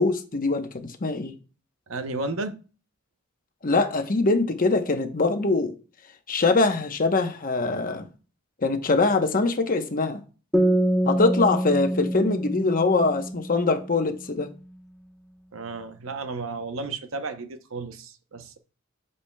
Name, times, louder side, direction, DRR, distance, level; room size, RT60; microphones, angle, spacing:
voice 1, 0.0-1.3 3.6-5.7 6.3-8.1 8.6-10.2 11.1-14.5, left 3 dB, 45° left, 1.0 m, -23 dB
voice 2, 1.9-2.6 15.5-18.6, right 3 dB, 70° right, 0.8 m, -33 dB
sound 1, 10.5-14.0, right 1 dB, ahead, 1.0 m, -25 dB
8.6 x 6.8 x 2.3 m
head